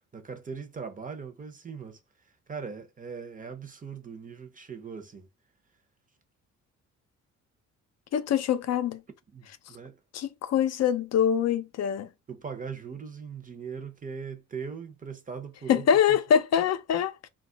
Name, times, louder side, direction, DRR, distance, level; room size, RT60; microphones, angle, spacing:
voice 1, 0.1-2.0 2.5-5.3 9.3-10.0 12.3-16.2, right 6 dB, 25° right, 0.6 m, -40 dB
voice 2, 8.1-9.0 10.1-12.1 15.7-17.1, left 8 dB, 60° left, 0.5 m, -24 dB
2.3 x 2.0 x 3.7 m
cardioid pair, 90°, 30 cm